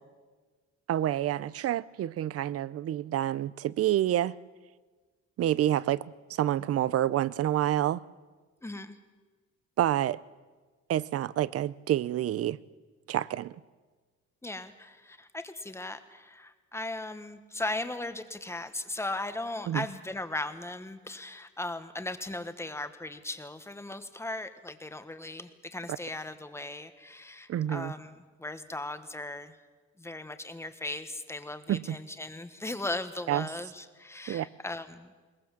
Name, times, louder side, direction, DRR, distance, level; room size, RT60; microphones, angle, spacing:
voice 1, 0.9-4.3 5.4-6.0 6.3-8.0 9.8-10.2 10.9-12.6 13.1-13.5 19.7-19.8 27.5-27.9 31.7-32.0 33.3-33.5 34.3-34.5, right 12 dB, 55° right, 0.6 m, -28 dB
voice 2, 8.6-9.0 14.4-29.6 30.0-35.1, left 2 dB, 10° left, 1.1 m, -38 dB
21.0 x 21.0 x 7.5 m
cardioid pair, 155°, 29 cm